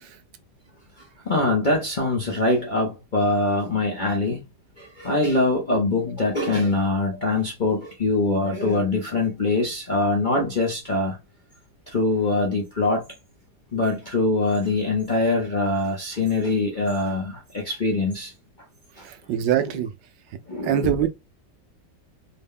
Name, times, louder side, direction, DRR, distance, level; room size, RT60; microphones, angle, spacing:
voice 1, 1.0-4.4 4.8-11.2 11.9-13.0 13.7-18.3 19.0-19.1 19.6-19.7 20.5-20.9, left 2 dB, 50° left, 0.5 m, -23 dB
voice 2, 19.0-19.9 20.6-21.1, right 10 dB, 90° right, 1.3 m, -23 dB
3.9 x 2.1 x 3.6 m
omnidirectional pair, 1.9 m